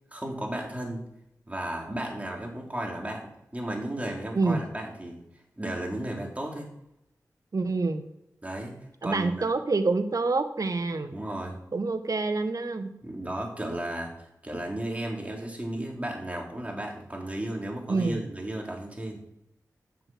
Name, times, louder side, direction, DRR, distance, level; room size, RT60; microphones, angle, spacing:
voice 1, 0.1-1.0 1.5-5.2 5.6-6.7 8.4-9.5 11.1-11.6 13.0-19.2, right 1 dB, 20° right, -1 dB, 3.8 m, -34 dB
voice 2, 7.5-8.0 9.0-11.1 11.7-12.9 17.9-18.2, right 3 dB, 55° right, 9 dB, 1.2 m, -27 dB
7.7 x 7.6 x 7.4 m, 0.82 s
cardioid pair, 40°, 7 cm